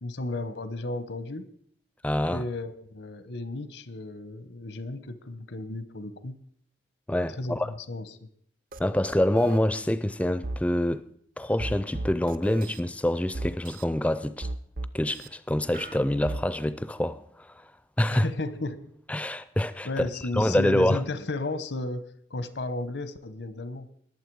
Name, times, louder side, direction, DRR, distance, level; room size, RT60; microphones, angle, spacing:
voice 1, 0.0-1.5 2.3-6.4 7.4-8.3 18.1-18.9 19.8-23.9, left 2 dB, 80° left, 1.0 m, -34 dB
voice 2, 2.0-2.4 7.1-7.7 8.8-11.1 11.4-14.5 14.9-17.6 18.0-18.3 19.1-19.9 20.3-21.0, left 1 dB, 5° left, 0.4 m, -26 dB
sound 1, 8.7-8.8 9.1-9.6 10.4-10.6 11.6-12.8 13.3-13.8 14.4-15.3 15.7-16.4, right 2 dB, 50° right, 0.5 m, -35 dB
20.0 x 7.4 x 4.7 m
head